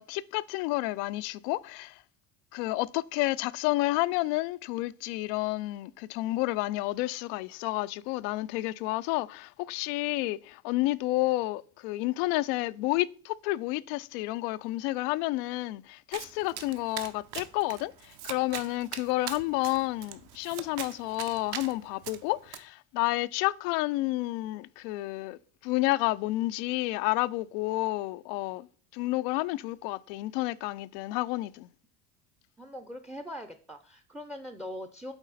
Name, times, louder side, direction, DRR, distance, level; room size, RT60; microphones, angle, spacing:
voice 1, 0.0-2.0 2.5-28.7 28.9-31.7, left 19 dB, 85° left, 0.5 m, -30 dB
Domestic sounds home sounds, 16.1-22.6, right 10 dB, 55° right, 0.9 m, -42 dB
voice 2, 32.6-35.1, left 1 dB, ahead, 0.5 m, -41 dB
8.0 x 4.1 x 4.0 m
supercardioid pair, 90°, 48 cm